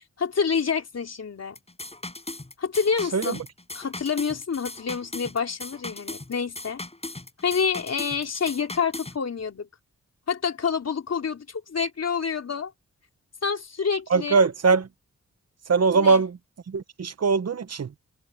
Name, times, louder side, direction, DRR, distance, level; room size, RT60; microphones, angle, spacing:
voice 1, 0.2-1.6 2.6-3.4 3.7-6.8 7.4-9.7 10.3-12.7 13.4-14.5 15.9-16.2, left 6 dB, 60° left, 3.8 m, -27 dB
sound 1, 1.5-9.2, left 2 dB, 20° left, 7.8 m, -38 dB
voice 2, 14.1-14.9 15.7-16.4 16.7-17.9, right 4 dB, 60° right, 1.3 m, -21 dB
cardioid pair, 65°, 29 cm